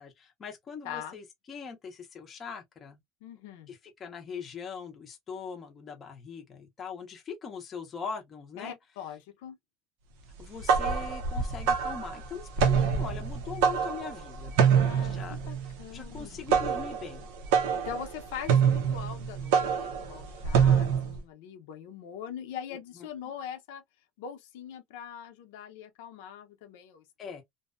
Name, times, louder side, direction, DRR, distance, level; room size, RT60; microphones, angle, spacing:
voice 1, 0.0-3.0 3.7-8.8 10.4-14.5 14.8-15.4 15.9-17.3 27.2-27.4, left 5 dB, 20° left, 0.5 m, -41 dB
voice 2, 0.8-1.2 3.2-3.7 8.6-9.6 14.7-16.4 17.8-23.8 24.2-27.0, left 8 dB, 90° left, 0.6 m, -42 dB
sound 1, 10.4-21.2, right 7 dB, 80° right, 0.6 m, -26 dB
2.6 x 2.0 x 2.4 m
cardioid pair, 175°, 0 cm